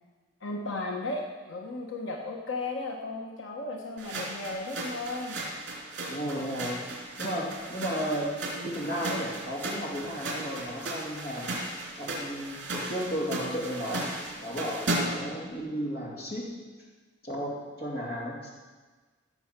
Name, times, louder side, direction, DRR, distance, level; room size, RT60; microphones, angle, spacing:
voice 1, 0.4-5.4, left 2 dB, 85° left, 1 dB, 1.1 m, -35 dB
sound 1, 4.0-15.3, right 2 dB, 65° right, 3.4 m, -36 dB
voice 2, 6.1-6.8 7.2-8.3 8.6-11.5 11.9-14.1 14.4-16.5 17.2-18.5, equal, 50° left, -4 dB, 2.8 m, -34 dB
16.0 x 6.9 x 6.0 m, 1.4 s
head